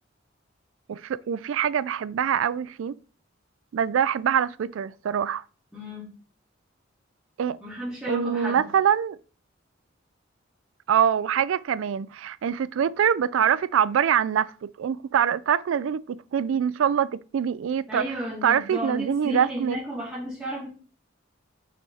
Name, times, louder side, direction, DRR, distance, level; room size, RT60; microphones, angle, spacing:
voice 1, 0.9-2.9 3.7-5.4 7.4-7.6 8.1-9.2 10.9-18.0 18.4-19.8, right 8 dB, 75° right, 0.3 m, -24 dB
voice 2, 5.7-6.1 7.6-8.7 17.9-20.7, right 1 dB, 5° right, 2.8 m, -33 dB
6.1 x 5.5 x 4.2 m
head